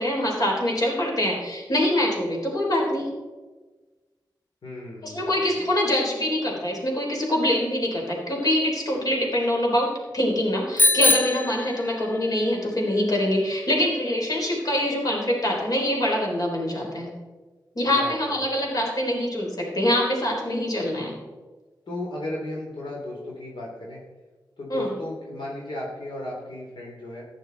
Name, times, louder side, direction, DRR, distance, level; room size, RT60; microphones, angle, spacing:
voice 1, 0.0-3.1 5.0-17.1 17.8-21.1 24.7-24.9, left 1 dB, 50° left, -1 dB, 3.7 m, -24 dB
voice 2, 4.6-5.7 17.9-18.6 21.9-24.0 24.6-27.2, left 1 dB, 80° left, -3 dB, 3.0 m, -35 dB
Bicycle bell, 10.8-12.3, left 1 dB, 25° left, 0.4 m, -22 dB
14.5 x 10.5 x 4.0 m, 1.3 s
wide cardioid pair, 80°, 8 cm